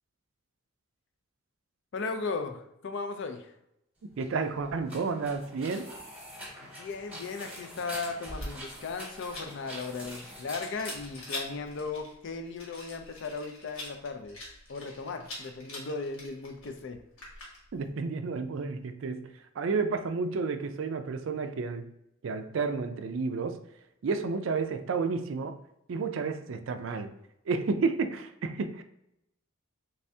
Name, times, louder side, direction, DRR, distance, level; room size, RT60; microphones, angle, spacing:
voice 1, 1.9-3.5 6.6-14.4 14.7-17.0, left 4 dB, 60° left, 7 dB, 0.4 m, -37 dB
sound 1, 4.1-12.0, equal, 5° right, 1.0 m, -44 dB
voice 2, 4.2-5.9 17.7-21.9 22.2-23.6 24.0-25.6 25.9-27.1 27.5-28.8, right 4 dB, 60° right, 8 dB, 0.4 m, -31 dB
Rattle, 8.3-17.9, left 2 dB, 80° left, 1.3 m, -45 dB
3.3 x 3.3 x 2.7 m, 0.83 s
head